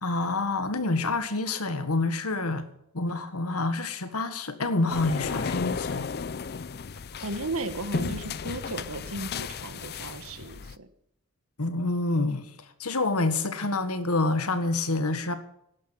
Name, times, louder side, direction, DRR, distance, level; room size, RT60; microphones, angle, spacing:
voice 1, 0.0-2.7 2.9-6.1 11.6-15.3, left 2 dB, 85° left, 1.7 m, -27 dB
sound 1, 4.9-10.8, left 5 dB, 45° left, 0.5 m, -34 dB
voice 2, 7.2-10.9, right 2 dB, 70° right, 1.5 m, -35 dB
11.5 x 11.5 x 8.9 m
head